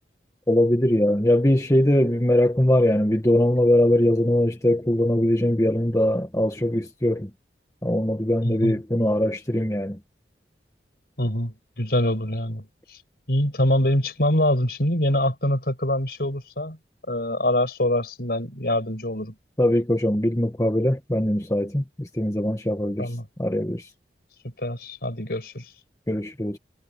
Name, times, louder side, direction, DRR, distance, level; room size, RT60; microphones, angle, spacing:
voice 1, 0.5-7.3 7.8-10.0 19.6-23.1 23.4-23.9 26.1-26.6, left 1 dB, 20° left, 1.4 m, -21 dB
voice 2, 8.4-8.8 11.2-13.0 13.3-16.8 17.1-19.3 23.0-23.3 24.6-25.7, left 1 dB, 60° left, 6.1 m, -24 dB
head